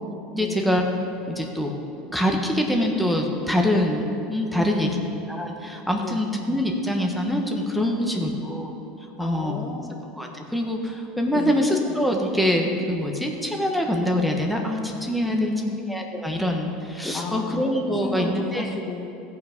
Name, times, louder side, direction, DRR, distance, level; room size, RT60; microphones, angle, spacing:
voice 1, 0.3-0.8 1.3-1.7 2.1-5.0 5.3-8.7 9.2-9.6 10.2-15.5 15.9-18.7, equal, ahead, 1 dB, 1.3 m, -24 dB
voice 2, 4.6-5.1 5.9-6.2 7.8-8.5 9.2-10.0 11.3-11.7 15.3-15.8 17.1-17.7 18.0-19.1, left 3 dB, 35° left, 2 dB, 1.0 m, -32 dB
16.5 x 5.9 x 5.3 m, 2.8 s
supercardioid pair, 115°, 0 cm